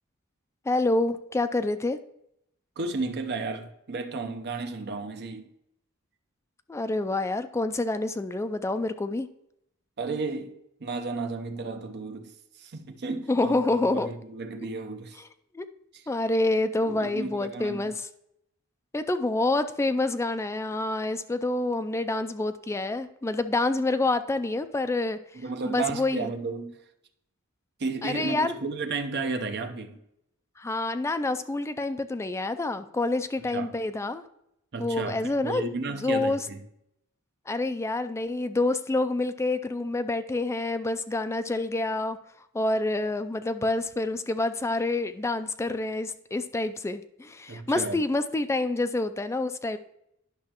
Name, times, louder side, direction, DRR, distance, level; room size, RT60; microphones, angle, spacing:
voice 1, 0.7-2.0 6.7-9.3 13.3-14.1 15.2-15.3 15.5-15.7 16.1-18.1 18.9-26.3 28.0-28.5 30.6-34.2 34.8-36.5 37.5-42.2 42.5-49.8, left 2 dB, 10° left, 0.3 m, -27 dB
voice 2, 2.8-5.5 10.0-10.5 10.8-12.3 12.6-13.6 13.9-15.2 16.8-17.9 25.3-26.8 27.8-30.0 33.5-33.7 34.7-36.6 47.5-48.0, right 3 dB, 50° right, 0.7 m, -33 dB
10.5 x 5.6 x 2.9 m
head